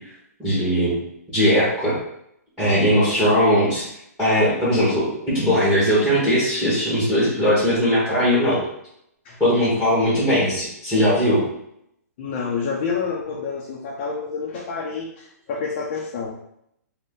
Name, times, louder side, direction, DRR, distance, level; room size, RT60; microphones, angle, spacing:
voice 1, 0.4-0.9 1.3-1.9 2.6-3.9 4.2-8.6 9.4-11.4, equal, 5° right, -9 dB, 0.9 m, -19 dB
voice 2, 12.2-16.3, left 5 dB, 35° left, -2 dB, 0.4 m, -28 dB
2.5 x 2.1 x 3.5 m, 0.76 s
hypercardioid pair, 155°, 9 cm